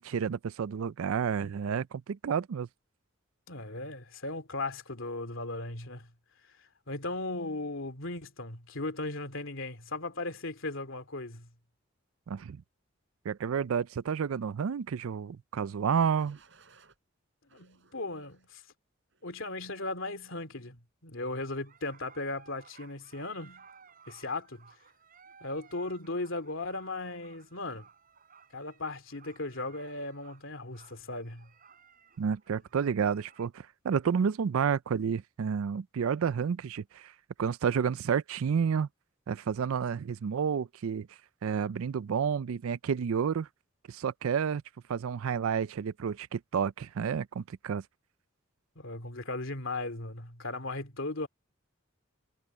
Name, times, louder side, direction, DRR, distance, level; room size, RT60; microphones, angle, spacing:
voice 1, 0.0-2.7 12.3-12.6 13.2-16.4 32.2-37.1 37.4-38.9 39.3-41.1 41.4-43.5 43.9-44.6 44.9-47.8, right 6 dB, 75° right, 0.4 m, -30 dB
voice 2, 3.5-6.1 6.9-11.5 17.5-18.6 19.2-23.7 24.1-24.7 25.4-27.9 28.5-31.5 48.8-51.3, left 2 dB, 65° left, 2.8 m, -37 dB
sound 1, 15.9-17.0 17.5-18.5 19.1-19.5, right 4 dB, 60° right, 5.0 m, -61 dB
sound 2, 21.6-33.5, right 6 dB, 40° right, 7.4 m, -58 dB
head